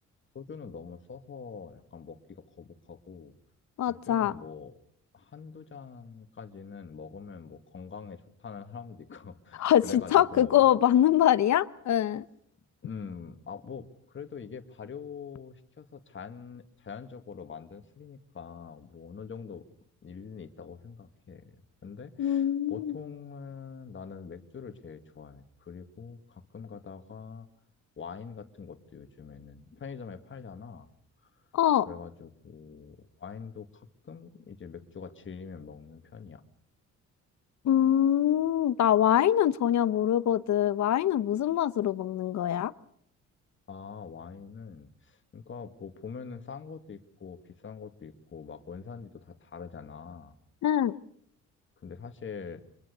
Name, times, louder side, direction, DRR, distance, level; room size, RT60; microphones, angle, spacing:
voice 1, 0.3-3.3 3.9-4.7 5.1-10.7 12.8-19.7 20.0-21.5 21.8-27.5 28.0-30.9 31.2-31.4 31.9-36.4 43.7-50.4 51.8-52.6, left 6 dB, 40° left, 9 dB, 2.2 m, -44 dB
voice 2, 3.8-4.3 9.6-12.2 22.2-23.0 31.5-31.9 37.6-42.7 50.6-50.9, left 11 dB, 65° left, 16 dB, 1.0 m, -24 dB
25.5 x 21.5 x 6.8 m, 0.65 s
cardioid pair, 90°, 30 cm